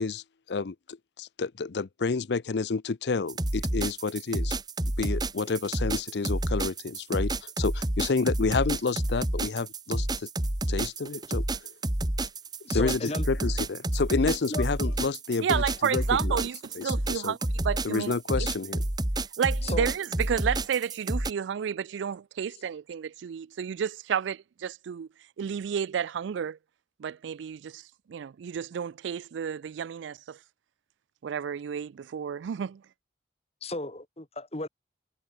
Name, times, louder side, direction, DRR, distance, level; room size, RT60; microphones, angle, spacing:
voice 1, 0.0-4.6 4.8-10.3 10.7-11.4 12.7-16.5 16.7-17.4 17.8-18.8, left 4 dB, 70° left, 0.6 m, -30 dB
sound 1, 3.3-21.3, right 1 dB, 25° right, 1.6 m, -29 dB
voice 2, 12.6-13.3 14.5-14.6 19.6-19.9 22.5-22.6 33.6-34.7, left 2 dB, 35° left, 2.1 m, -35 dB
voice 3, 15.4-16.5 16.8-17.4 17.7-18.1 19.4-19.9 20.3-24.4 24.6-25.1 25.4-26.5 27.0-27.6 28.1-30.1 31.2-32.7, right 7 dB, 85° right, 0.4 m, -31 dB
head